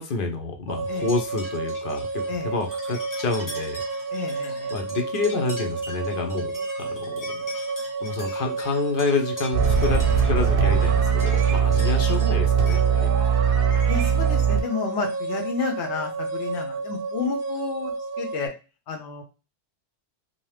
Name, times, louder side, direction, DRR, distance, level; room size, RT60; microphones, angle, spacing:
voice 1, 0.0-3.8 4.7-7.2 8.0-13.1, left 3 dB, 60° left, 4 dB, 0.7 m, -28 dB
sound 1, 0.7-18.5, right 3 dB, 60° right, 0.7 m, -31 dB
sound 2, 1.0-12.8, left 1 dB, 20° left, 0.7 m, -42 dB
voice 2, 2.3-2.6 4.1-4.7 13.9-17.9 18.2-18.5 18.9-19.2, left 5 dB, 80° left, 4 dB, 0.9 m, -31 dB
sound 3, 9.5-14.6, right 7 dB, 90° right, 0.9 m, -20 dB
2.7 x 2.0 x 3.2 m, 0.31 s
omnidirectional pair, 1.1 m